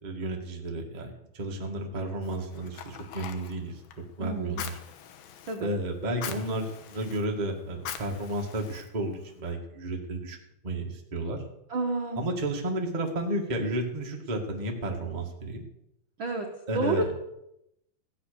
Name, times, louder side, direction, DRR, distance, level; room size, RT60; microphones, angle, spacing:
voice 1, 0.0-3.8 4.2-4.8 5.6-10.4 10.6-11.4 12.2-15.7 16.7-17.1, right 1 dB, 30° right, 1 dB, 0.8 m, -32 dB
Fire, 2.2-9.4, left 9 dB, 80° left, 2.9 m, -44 dB
voice 2, 4.2-4.6 5.5-5.7 11.7-12.2 16.2-16.5 16.7-17.1, right 3 dB, 80° right, 2 dB, 1.1 m, -29 dB
15.5 x 8.8 x 6.8 m, 0.83 s
omnidirectional pair, 4.3 m